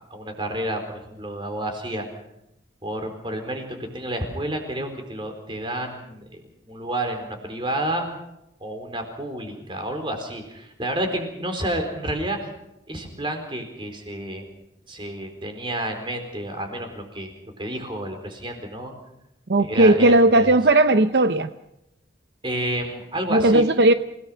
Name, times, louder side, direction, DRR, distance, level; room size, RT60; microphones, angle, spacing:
voice 1, 0.1-2.1 2.8-8.0 8.6-12.5 12.9-14.4 14.9-17.3 17.6-18.9 19.6-20.5 22.4-23.6, right 1 dB, 25° right, 5 dB, 4.3 m, -30 dB
voice 2, 19.5-21.5 23.3-23.9, right 2 dB, 65° right, 10 dB, 0.7 m, -16 dB
29.0 x 18.5 x 5.8 m, 0.86 s
head